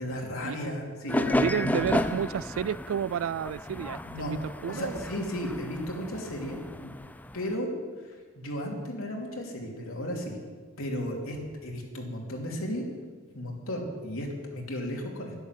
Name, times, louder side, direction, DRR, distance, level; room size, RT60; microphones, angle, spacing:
voice 1, 0.0-2.0 4.0-4.4 4.7-6.9 7.3-7.7 8.0-10.4 10.8-11.4 11.6-12.8 13.3-15.3, equal, 90° left, 2.9 m, -34 dB
sound 1, 1.1-7.6, left 1 dB, 10° left, 0.4 m, -33 dB
voice 2, 1.3-5.0, right 8 dB, 75° right, 0.3 m, -31 dB
11.0 x 11.0 x 7.5 m
head